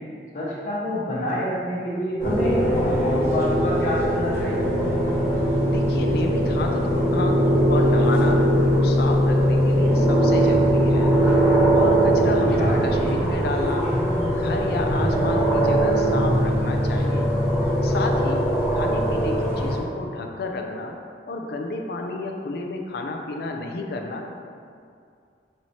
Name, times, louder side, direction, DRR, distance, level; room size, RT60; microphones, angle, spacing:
voice 1, 0.3-4.6 12.6-13.1, equal, 45° left, -7 dB, 1.0 m, -28 dB
sound 1, 2.2-19.8, equal, 15° right, 1.1 m, -20 dB
voice 2, 5.6-7.4 7.7-11.1 11.7-13.9 14.3-17.3 17.8-18.4 18.7-20.9 21.3-24.2, left 2 dB, 60° left, 2 dB, 0.4 m, -31 dB
5.4 x 3.0 x 2.8 m, 2.3 s
head